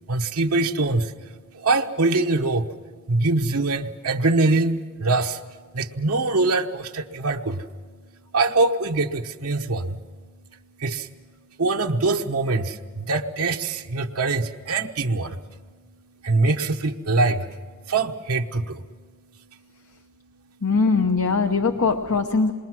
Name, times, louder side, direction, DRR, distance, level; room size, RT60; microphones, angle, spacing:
voice 1, 0.1-2.8 3.1-20.6 21.4-21.5, right 3 dB, 75° right, 3 dB, 1.1 m, -25 dB
voice 2, 20.6-22.5, left 4 dB, 70° left, 6 dB, 0.9 m, -21 dB
27.5 x 22.0 x 6.2 m, 1.5 s
head